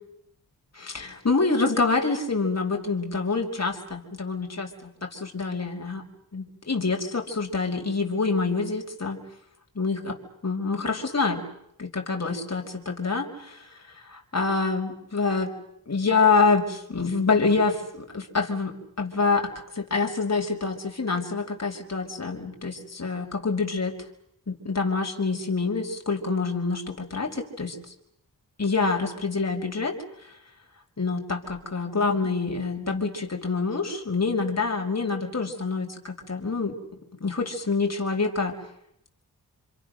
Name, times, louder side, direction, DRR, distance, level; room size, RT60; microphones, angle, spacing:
voice 1, 0.8-6.0 6.3-9.2 9.8-10.2 10.4-11.4 11.8-13.6 14.0-15.5 15.9-23.9 24.5-27.7 28.6-30.0 31.0-36.8 37.2-38.6, left 4 dB, 45° left, 2 dB, 5.4 m, -26 dB
28.5 x 26.5 x 6.6 m, 0.74 s
cardioid pair, 50°, 37 cm